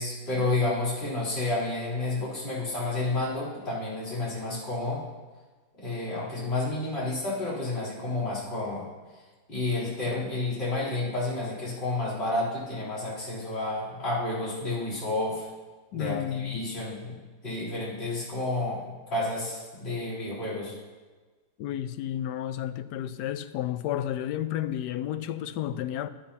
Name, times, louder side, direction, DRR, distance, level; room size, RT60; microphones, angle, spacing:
voice 1, 0.0-5.0 5.8-8.9 9.5-15.5 15.9-17.2 17.4-20.7, left 2 dB, 40° left, 3.8 m, -30 dB
voice 2, 15.9-16.6 21.6-26.1, left 11 dB, 85° left, 1.2 m, -31 dB
16.0 x 10.0 x 2.9 m
omnidirectional pair, 1.7 m